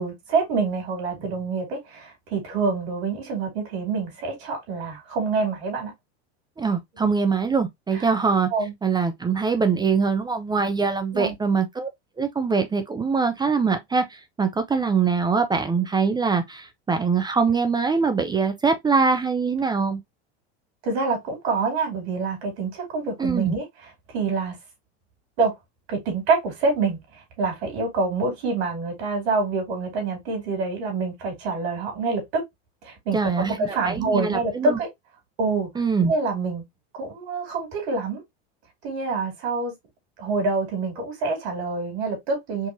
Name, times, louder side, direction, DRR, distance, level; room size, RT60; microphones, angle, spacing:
voice 1, 0.0-5.9 7.0-7.1 7.9-8.1 8.5-8.7 11.1-11.3 20.8-23.6 24.1-24.6 25.4-25.5 25.9-32.4 32.8-34.9 35.4-35.7 36.0-36.6 36.9-38.2 38.8-39.7 40.2-42.7, right 4 dB, 75° right, 2.7 m, -26 dB
voice 2, 6.6-8.5 8.8-11.9 12.2-20.0 23.2-23.5 33.1-34.8 35.8-36.1, right 5 dB, 15° right, 0.4 m, -23 dB
4.6 x 2.8 x 2.5 m
hypercardioid pair, 105°, 32 cm